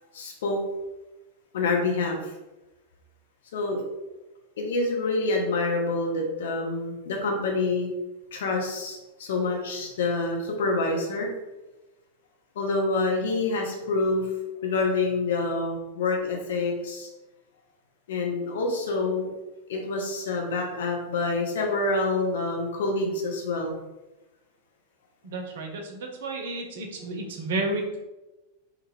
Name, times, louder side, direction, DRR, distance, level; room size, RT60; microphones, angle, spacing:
voice 1, 0.1-0.6 1.5-2.3 3.5-3.8 4.6-7.9 8.3-11.3 12.5-14.3 14.6-17.1 18.1-19.3 19.7-23.8, left 3 dB, 60° left, 1 dB, 0.6 m, -27 dB
voice 2, 25.2-28.0, right 2 dB, 55° right, 3 dB, 0.5 m, -31 dB
2.4 x 2.3 x 3.1 m, 1.1 s
figure-of-eight pair, 90°, 0 cm